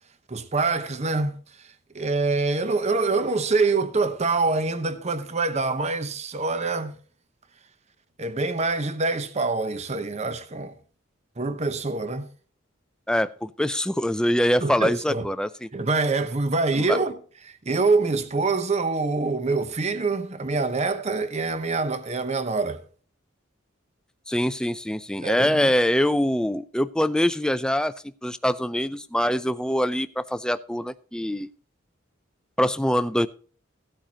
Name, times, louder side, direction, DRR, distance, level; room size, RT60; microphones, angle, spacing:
voice 1, 0.3-1.4 1.9-6.9 8.2-10.7 11.4-12.3 14.6-15.3 15.7-17.2 17.4-22.8 25.2-25.7, right 3 dB, 35° right, 0.9 m, -25 dB
voice 2, 13.1-15.7 16.7-17.0 24.3-27.9 28.2-31.5 32.6-33.3, equal, 5° left, 0.4 m, -24 dB
16.5 x 8.9 x 2.9 m
head